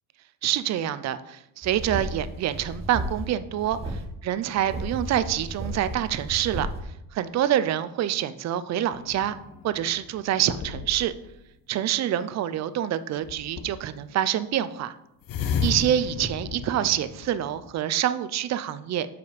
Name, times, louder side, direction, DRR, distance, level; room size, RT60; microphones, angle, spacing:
voice 1, 0.4-6.7 7.1-9.3 9.6-11.1 11.7-14.9 15.6-19.1, right 11 dB, 40° right, 13 dB, 0.4 m, -26 dB
sound 1, 1.6-3.3 3.6-4.0 4.6-6.8, right 1 dB, 15° right, 1.1 m, -34 dB
sound 2, 8.9-11.3 13.3-14.0 15.2-17.7, left 5 dB, 50° left, 0.8 m, -33 dB
7.0 x 5.1 x 5.0 m, 0.83 s
cardioid pair, 160°, 42 cm